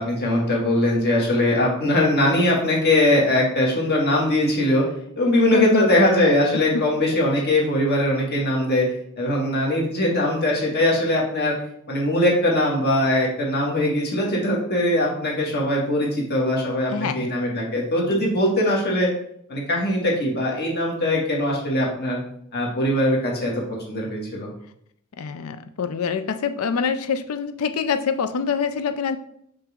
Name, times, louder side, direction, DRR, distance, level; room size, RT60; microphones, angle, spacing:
voice 1, 0.0-4.8 5.2-8.8 9.2-11.5 11.9-19.1 19.5-22.2 22.5-23.5 23.9-24.5, left 1 dB, 50° left, -3 dB, 2.3 m, -21 dB
voice 2, 5.5-5.9 6.7-6.8 7.4-7.5 16.9-17.4 18.0-18.4 25.2-29.2, left 5 dB, 70° left, 10 dB, 0.5 m, -25 dB
6.3 x 5.9 x 3.7 m, 0.68 s
head